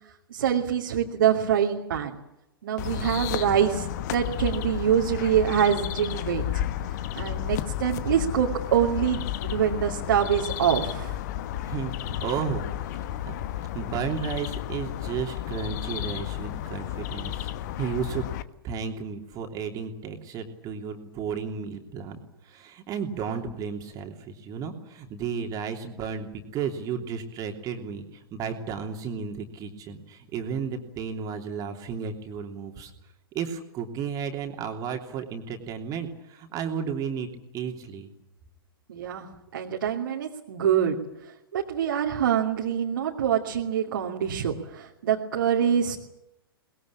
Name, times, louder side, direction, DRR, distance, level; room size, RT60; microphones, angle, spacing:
voice 1, 0.3-2.2 2.6-6.4 7.1-11.2 38.9-39.3 39.5-41.0 41.5-46.0, right 9 dB, 60° right, 0 dB, 2.6 m, -25 dB
sound 1, 2.8-18.4, left 12 dB, 45° left, 1.2 m, -32 dB
voice 2, 11.6-12.6 12.9-13.4 13.7-17.5 17.8-18.3 18.6-22.2 22.4-32.9 33.3-38.1, right 6 dB, 30° right, 4 dB, 3.1 m, -33 dB
23.0 x 21.0 x 8.7 m, 0.88 s
figure-of-eight pair, 105°, 13 cm